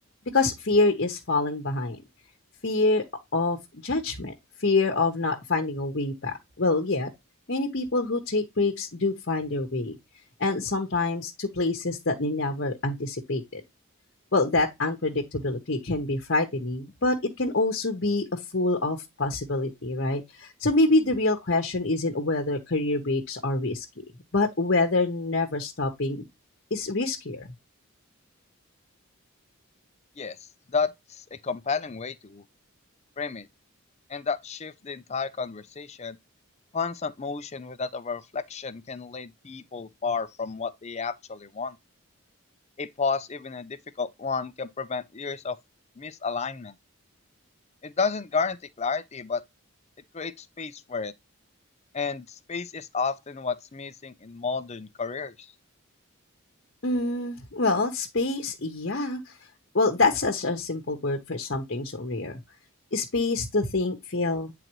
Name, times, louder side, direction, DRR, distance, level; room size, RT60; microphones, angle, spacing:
voice 1, 0.3-2.0 2.6-3.0 3.3-3.6 3.8-4.3 4.6-7.1 7.5-10.0 10.4-13.6 14.3-23.8 24.3-26.2 26.7-27.5 56.8-59.3 59.7-62.4 62.9-64.5, left 2 dB, 55° left, 1.0 m, -26 dB
voice 2, 30.7-32.4 33.2-33.5 34.1-36.2 36.7-41.8 42.8-45.6 46.0-46.7 47.8-49.4 50.1-51.1 51.9-55.5, left 5 dB, 30° left, 0.5 m, -31 dB
9.2 x 3.9 x 3.0 m
head